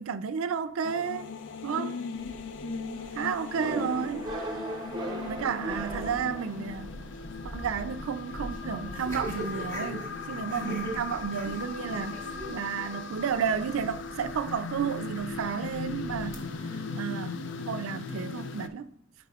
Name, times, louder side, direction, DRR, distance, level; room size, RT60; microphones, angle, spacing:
voice 1, 0.0-1.3 1.6-1.9 3.2-4.3 5.2-6.9 7.5-12.2 12.5-16.4 16.9-17.4 17.7-18.9, right 7 dB, 85° right, 0.4 m, -32 dB
sound 1, 0.8-18.7, left 4 dB, 60° left, 0.4 m, -39 dB
voice 2, 1.7-2.3 2.6-3.1 4.9-5.3 10.5-10.8 16.6-17.0, left 3 dB, 90° left, 0.8 m, -39 dB
sound 2, 2.1-16.6, right 1 dB, 15° left, 1.6 m, -43 dB
sound 3, 3.5-7.1, right 1 dB, 20° right, 0.9 m, -36 dB
12.5 x 5.0 x 2.3 m
head